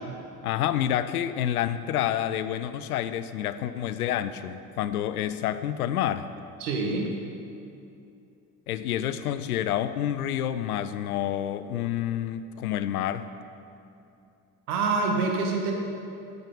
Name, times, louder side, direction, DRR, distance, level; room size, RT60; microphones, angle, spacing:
voice 1, 0.4-6.3 8.7-13.3, left 11 dB, 90° left, 13 dB, 0.5 m, -28 dB
voice 2, 6.6-7.1 14.7-15.7, right 3 dB, 80° right, 2 dB, 1.7 m, -26 dB
14.0 x 8.1 x 5.3 m, 2.6 s
hypercardioid pair, 55°, 43 cm